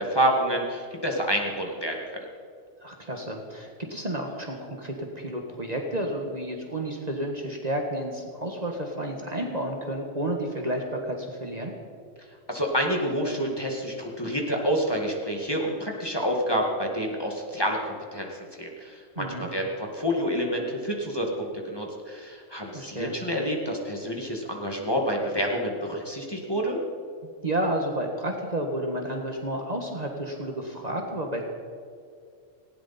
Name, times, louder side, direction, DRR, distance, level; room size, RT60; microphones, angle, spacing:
voice 1, 0.0-2.2 12.5-18.3 18.6-26.8, equal, 20° left, 0 dB, 2.0 m, -28 dB
voice 2, 2.8-11.7 19.1-19.5 22.7-23.1 27.2-31.5, right 1 dB, 30° right, 1 dB, 1.7 m, -31 dB
19.0 x 17.0 x 4.3 m, 2.3 s
omnidirectional pair, 1.3 m